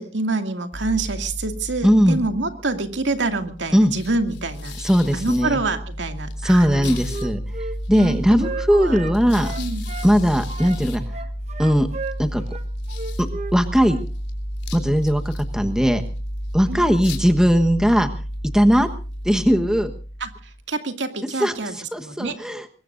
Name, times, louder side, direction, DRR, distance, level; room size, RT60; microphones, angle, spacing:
voice 1, 0.0-4.8 5.1-7.0 7.9-9.0 9.6-9.8 16.7-16.9 20.2-22.4, right 3 dB, 80° right, 6 dB, 2.3 m, -27 dB
sound 1, 0.7-20.6, equal, 70° left, 3.4 m, -31 dB
voice 2, 1.8-2.2 3.7-3.9 4.8-5.6 6.4-7.4 7.9-9.5 10.0-11.0 11.6-11.9 12.2-12.4 13.5-14.0 14.7-16.0 16.5-18.1 18.5-18.9 19.2-19.9 21.4-21.5 21.9-22.7, equal, 5° right, 7 dB, 1.2 m, -18 dB
Wind instrument woodwind instrument, 6.7-10.1 10.5-13.6 13.8-14.1, right 4 dB, 35° right, 1.1 m, -35 dB
23.5 x 21.5 x 2.6 m, 0.36 s
head